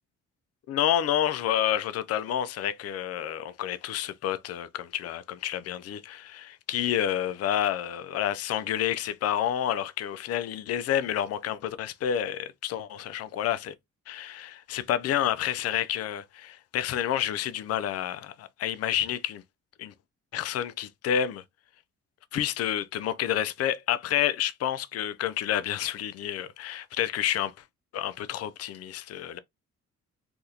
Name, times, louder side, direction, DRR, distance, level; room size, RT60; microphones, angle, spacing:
voice 1, 0.7-13.7 14.1-19.4 19.8-19.9 20.3-21.4 22.3-27.5 27.9-29.4, left 10 dB, 55° left, 0.4 m, -29 dB
3.5 x 2.4 x 2.7 m
cardioid pair, 90°, 30 cm